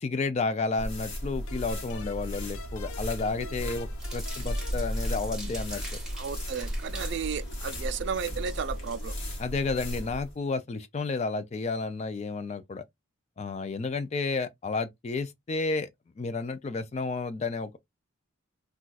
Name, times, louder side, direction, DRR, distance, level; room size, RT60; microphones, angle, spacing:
voice 1, 0.0-6.0 9.4-12.8 13.4-15.9 16.2-17.8, left 3 dB, 30° left, 0.3 m, -31 dB
sound 1, 0.8-10.3, equal, 60° left, 1.2 m, -35 dB
sound 2, 1.5-5.8, left 4 dB, 85° left, 0.6 m, -48 dB
sound 3, 4.0-9.4, right 2 dB, 5° right, 0.9 m, -45 dB
voice 2, 6.1-9.2, right 6 dB, 55° right, 0.4 m, -33 dB
2.4 x 2.3 x 3.9 m
head